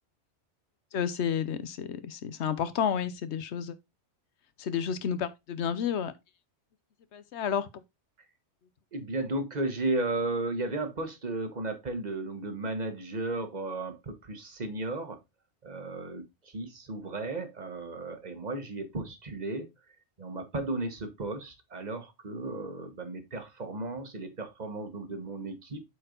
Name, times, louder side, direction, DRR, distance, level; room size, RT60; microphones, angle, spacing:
voice 1, 0.9-3.7 4.6-6.1 7.1-7.7, left 8 dB, 70° left, 1.1 m, -31 dB
voice 2, 8.9-15.2 15.6-19.7 20.2-25.8, right 2 dB, 35° right, 1.3 m, -34 dB
8.2 x 4.4 x 3.8 m
omnidirectional pair, 1.2 m